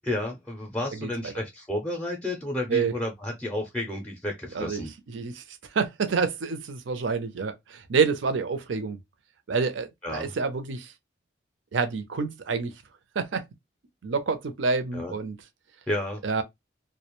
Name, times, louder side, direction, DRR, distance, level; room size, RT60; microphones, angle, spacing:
voice 1, 0.0-4.9 10.0-10.3 14.9-15.1 15.9-16.2, left 1 dB, 5° left, 0.4 m, -31 dB
voice 2, 5.1-5.4 5.7-9.0 9.5-10.9 11.7-12.7 13.2-13.4 14.0-15.4 16.2-16.4, right 5 dB, 85° right, 0.5 m, -27 dB
2.3 x 2.1 x 2.9 m
head